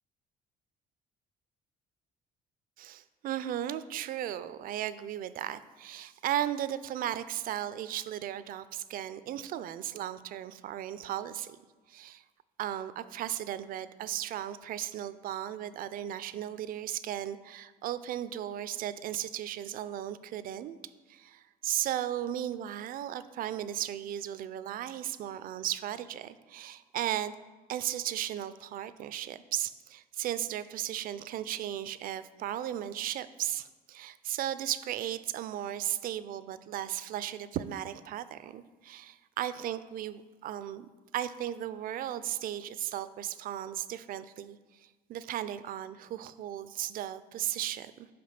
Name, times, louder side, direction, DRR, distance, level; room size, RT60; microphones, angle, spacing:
voice 1, 2.8-11.6 11.9-12.2 12.6-20.8 21.1-27.3 27.7-48.1, right 11 dB, 60° right, 14 dB, 0.4 m, -36 dB
5.3 x 5.1 x 5.7 m, 1.3 s
cardioid pair, 110°, 17 cm